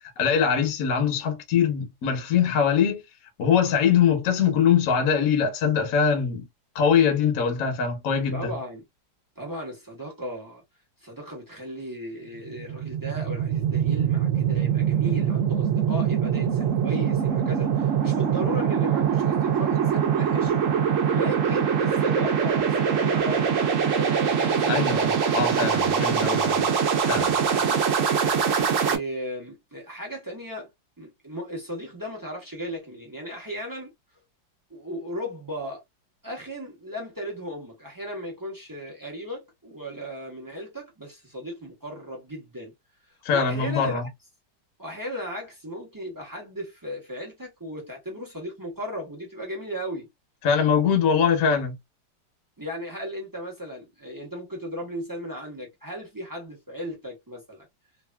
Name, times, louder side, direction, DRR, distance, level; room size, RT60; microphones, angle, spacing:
voice 1, 0.2-3.0 3.4-6.4 6.7-8.5 24.7-26.7 27.0-27.4 43.2-44.1 50.4-51.8, left 7 dB, 55° left, 1.1 m, -22 dB
voice 2, 8.3-8.8 9.4-10.6 11.0-20.5 21.1-24.9 27.6-27.8 28.8-30.7 31.0-33.9 34.7-35.8 36.2-42.7 43.3-44.1 44.8-50.1 52.6-57.7, equal, 30° right, 0.4 m, -36 dB
sound 1, 12.4-29.0, right 7 dB, 60° right, 0.8 m, -23 dB
3.2 x 2.4 x 2.2 m
omnidirectional pair, 2.1 m